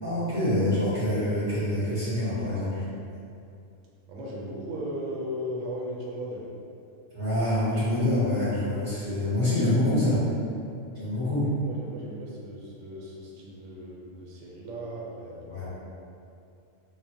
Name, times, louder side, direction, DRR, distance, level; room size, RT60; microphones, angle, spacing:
voice 1, 0.0-2.8 7.1-10.2 10.9-11.5 15.5-15.7, left 1 dB, 25° left, -15 dB, 1.3 m, -26 dB
voice 2, 4.1-6.5 11.6-15.7, equal, 75° right, -3 dB, 0.9 m, -37 dB
3.0 x 2.0 x 2.6 m, 2.5 s
omnidirectional pair, 1.3 m